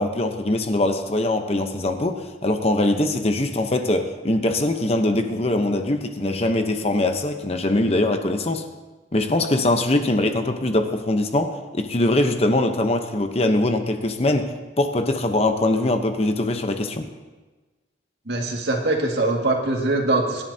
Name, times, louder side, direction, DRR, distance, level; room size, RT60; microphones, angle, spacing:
voice 1, 0.0-8.7 9.1-17.1, left 1 dB, 35° left, 6 dB, 0.9 m, -22 dB
voice 2, 18.3-20.4, right 2 dB, 60° right, 0 dB, 2.1 m, -22 dB
25.5 x 11.0 x 2.8 m, 1.3 s
head